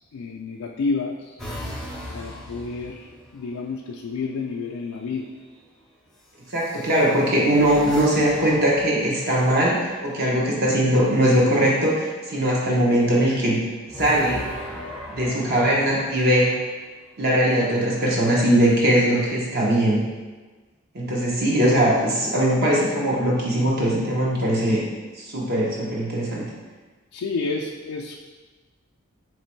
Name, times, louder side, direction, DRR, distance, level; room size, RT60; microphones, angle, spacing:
voice 1, 0.0-1.4 2.1-5.3 27.1-28.2, left 4 dB, 90° left, -1 dB, 0.4 m, -30 dB
sound 1, 1.4-3.6 4.9-5.4 6.5-9.9 13.9-16.8 17.6-19.4, left 1 dB, ahead, 0.5 m, -39 dB
voice 2, 6.5-13.6 13.9-14.4 15.1-16.5 17.2-20.0 20.9-24.8 25.2-26.4, right 1 dB, 45° right, -4 dB, 0.8 m, -20 dB
3.3 x 3.0 x 4.4 m, 1.3 s
head